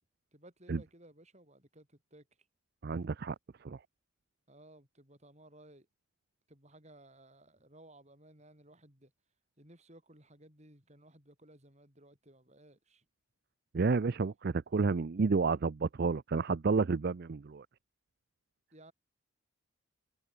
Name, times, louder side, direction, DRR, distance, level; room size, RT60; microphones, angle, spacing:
voice 1, 0.3-2.3 4.5-5.9 6.5-9.1 9.6-13.0 18.7-18.9, right 1 dB, 30° right, 7.1 m, -58 dB
voice 2, 2.8-3.4 3.6-3.8 13.7-17.7, right 4 dB, 45° right, 0.4 m, -30 dB
head